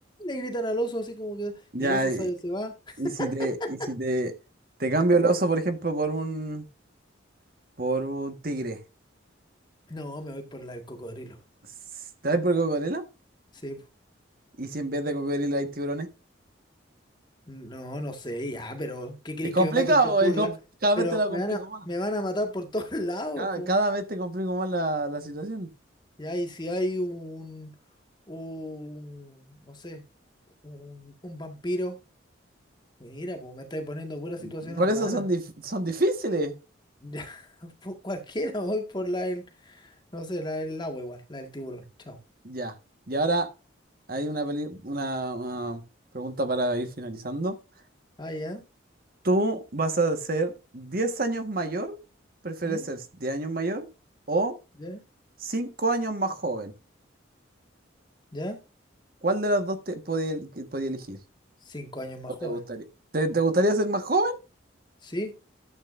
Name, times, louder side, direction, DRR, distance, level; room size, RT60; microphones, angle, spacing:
voice 1, 0.2-1.5 1.8-2.7 3.2-3.7 9.9-11.4 13.6-13.8 17.5-20.5 21.0-21.6 21.8-23.7 26.2-27.7 28.3-30.0 30.6-32.0 33.0-35.2 37.0-42.2 48.2-48.6 52.6-52.8 54.8-55.0 58.3-58.6 61.6-62.6 65.0-65.3, equal, 25° left, 1.8 m, -33 dB
voice 2, 1.7-2.3 3.0-4.3 4.8-6.6 7.8-8.8 12.2-13.0 14.6-16.1 19.5-20.5 20.8-21.7 23.4-25.7 34.4-36.5 42.4-42.7 43.1-43.5 44.1-45.8 46.1-47.6 49.2-52.0 52.4-53.9 54.3-54.6 55.4-56.7 59.2-61.2 62.4-62.8 63.1-64.4, right 2 dB, 50° right, 1.5 m, -27 dB
13.0 x 7.9 x 2.6 m
head